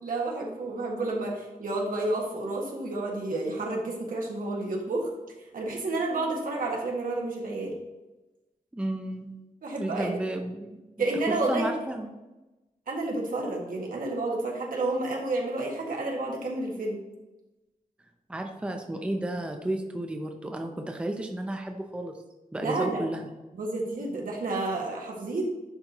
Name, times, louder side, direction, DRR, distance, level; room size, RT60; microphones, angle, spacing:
voice 1, 0.0-5.1 5.5-7.8 9.6-10.2 11.0-11.7 12.9-17.0 22.6-23.0 23.5-25.4, right 2 dB, 75° right, -1 dB, 1.7 m, -30 dB
voice 2, 8.7-9.3 9.8-10.7 11.0-12.1 18.3-22.2 22.5-23.3, right 1 dB, 10° right, 4 dB, 0.5 m, -32 dB
10.5 x 4.2 x 2.9 m, 1.1 s
wide cardioid pair, 160°, 14 cm